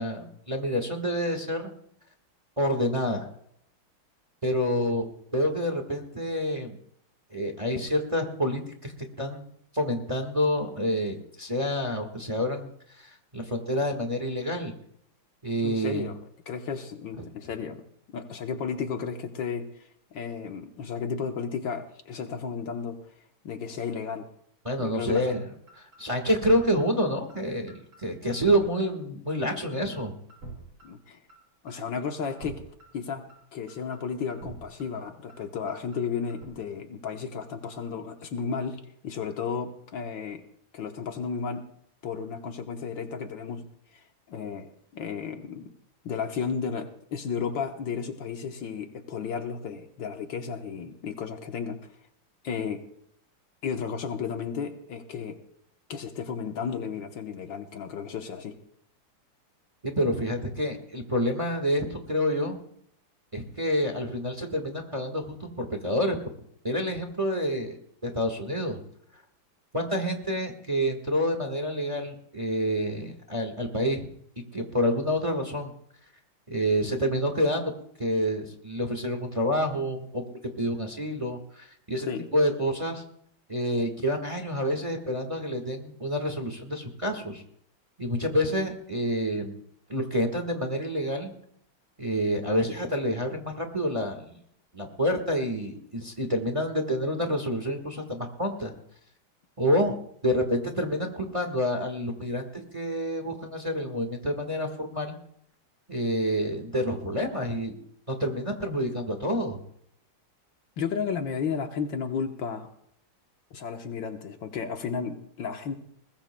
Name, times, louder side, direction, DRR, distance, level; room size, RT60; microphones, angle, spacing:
voice 1, 0.0-1.7 2.6-3.3 4.4-6.8 7.3-8.9 9.2-12.7 13.0-14.7 15.4-16.1 24.6-25.5 26.0-30.1 59.8-62.6 63.3-66.2 66.6-68.8 69.7-74.1 74.5-75.7 76.5-77.7 78.0-80.2 80.6-83.0 83.5-87.4 88.0-89.6 89.9-91.3 92.0-94.4 94.7-98.7 99.6-99.9 100.2-105.1 105.9-107.7 108.1-109.6, equal, 20° right, 3 dB, 1.3 m, -28 dB
voice 2, 15.6-16.2 16.5-17.8 18.1-23.0 23.4-24.3 24.8-25.4 30.8-31.2 31.6-32.6 32.9-40.4 40.7-41.7 42.0-43.6 44.3-45.7 46.0-51.9 52.4-52.8 53.6-55.4 55.9-58.6 82.1-82.3 110.8-112.7 113.5-115.8, left 6 dB, 65° left, 5 dB, 1.7 m, -33 dB
sound 1, 24.8-24.9 25.3-25.4 25.7-26.0 26.3-26.5 26.8-26.9 27.3-27.4 27.7-28.0 28.3-28.5 28.8-28.9 29.3-29.4 29.7-30.0 30.3-30.5 30.8-30.9 31.3-31.4 31.7-32.0 32.3-32.5 32.8-32.9 33.3-33.4 33.7-34.0 34.3-34.5 34.8-34.9 35.3-35.4 35.7-36.0 36.3-36.5, right 3 dB, 80° right, 6.7 m, -44 dB
21.0 x 20.5 x 2.2 m, 0.70 s
omnidirectional pair, 2.3 m